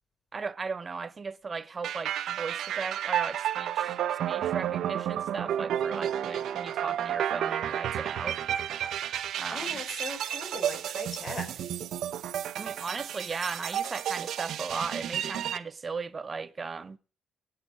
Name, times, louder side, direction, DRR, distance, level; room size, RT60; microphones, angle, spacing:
voice 1, 0.3-8.4 9.3-9.8 12.5-17.0, right 4 dB, 35° right, 0.9 m, -37 dB
sound 1, 1.8-15.6, right 10 dB, 75° right, 0.8 m, -32 dB
voice 2, 9.2-11.7, left 2 dB, 40° left, 5.1 m, -40 dB
20.0 x 6.8 x 4.9 m
cardioid pair, 90°, 0 cm